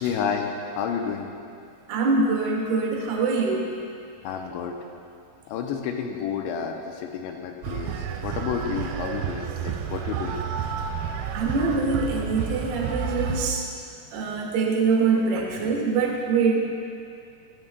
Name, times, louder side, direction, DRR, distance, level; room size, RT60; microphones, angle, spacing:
voice 1, 0.0-1.3 4.2-4.8 5.5-10.4 13.1-13.2, left 7 dB, 80° left, 3 dB, 2.8 m, -30 dB
voice 2, 1.9-3.7 11.3-13.6 14.1-16.6, right 4 dB, 70° right, 0 dB, 3.1 m, -24 dB
sound 1, 7.6-13.5, right 8 dB, 85° right, 2.9 m, -30 dB
18.0 x 12.0 x 2.3 m, 2.4 s
omnidirectional pair, 5.3 m